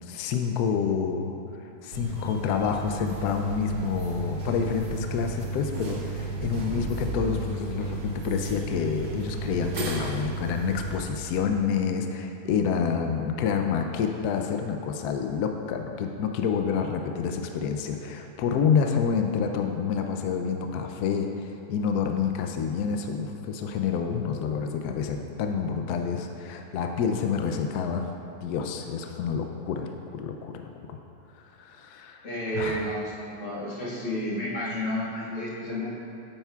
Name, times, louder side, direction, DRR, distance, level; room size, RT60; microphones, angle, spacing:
voice 1, 0.0-28.1 28.4-30.5 30.9-31.0 31.4-32.3 32.5-32.9, left 6 dB, 80° left, 4 dB, 0.8 m, -28 dB
sound 1, 1.9-11.0, right 3 dB, 65° right, 1.4 m, -33 dB
voice 2, 32.2-33.1 33.4-35.9, equal, 55° left, -8 dB, 2.3 m, -31 dB
8.9 x 8.8 x 2.3 m, 2.8 s
omnidirectional pair, 2.1 m